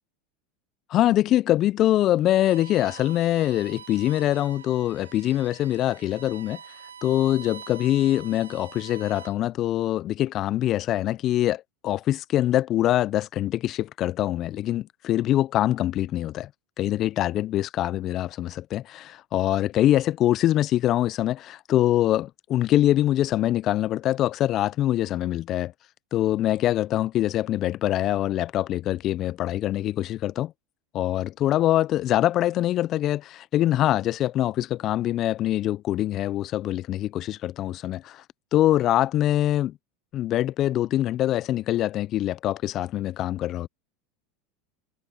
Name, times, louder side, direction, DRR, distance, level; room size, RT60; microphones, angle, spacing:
voice 1, 0.9-6.6 7.0-16.5 16.8-25.7 26.1-30.5 30.9-38.2 38.5-39.8 40.1-43.7, left 13 dB, 45° left, 0.7 m, -24 dB
Bowed string instrument, 2.3-9.5, right 7 dB, 85° right, 7.7 m, -45 dB
hypercardioid pair, 85°, 0 cm